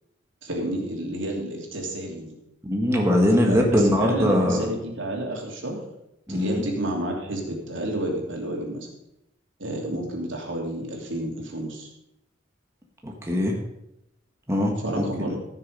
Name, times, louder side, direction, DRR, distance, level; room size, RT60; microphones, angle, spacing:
voice 1, 0.4-2.3 3.4-5.8 6.3-8.9 9.6-11.9 14.8-15.4, right 1 dB, 70° right, 0 dB, 2.9 m, -30 dB
voice 2, 2.6-4.7 6.3-6.6 13.0-13.6 14.5-15.4, equal, 15° right, 0 dB, 1.4 m, -22 dB
14.5 x 6.6 x 5.3 m, 0.83 s
head